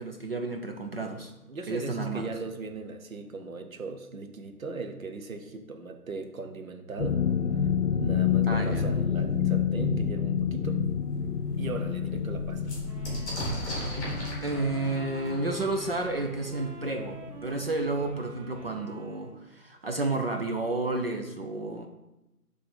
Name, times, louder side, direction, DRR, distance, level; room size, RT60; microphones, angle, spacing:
voice 1, 0.0-1.3 1.7-2.3 8.5-8.9 14.0-14.2 14.4-21.9, right 2 dB, 40° right, 4 dB, 0.6 m, -31 dB
voice 2, 1.5-7.2 8.0-10.8 11.6-12.7, right 3 dB, 60° right, 6 dB, 1.0 m, -38 dB
sound 1, 7.0-17.7 18.0-18.3 18.7-18.8, left 7 dB, 70° left, 0.7 m, -29 dB
sound 2, 10.6-10.7 11.2-11.3 11.5-17.1 18.1-18.2 18.4-19.0, equal, 10° left, 1.2 m, -38 dB
sound 3, 12.8-19.4, right 4 dB, 85° right, 1.3 m, -47 dB
6.7 x 3.4 x 5.3 m, 0.96 s
figure-of-eight pair, 150°, 46 cm